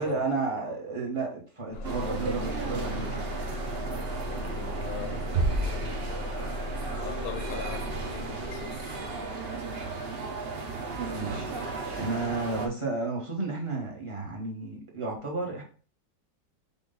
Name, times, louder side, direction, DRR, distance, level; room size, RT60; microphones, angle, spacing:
voice 1, 0.0-3.3 11.1-11.7 12.0-15.6, right 3 dB, 20° right, 1.0 m, -32 dB
Bus / Engine starting, 1.7-9.5, left 1 dB, 65° left, 0.9 m, -37 dB
sound 1, 1.8-12.7, right 4 dB, 75° right, 0.5 m, -35 dB
voice 2, 4.2-6.4 7.0-8.8, left 9 dB, 80° left, 1.3 m, -41 dB
sound 2, 5.3-7.0, right 2 dB, 55° right, 1.0 m, -30 dB
5.5 x 2.5 x 3.8 m
omnidirectional pair, 2.1 m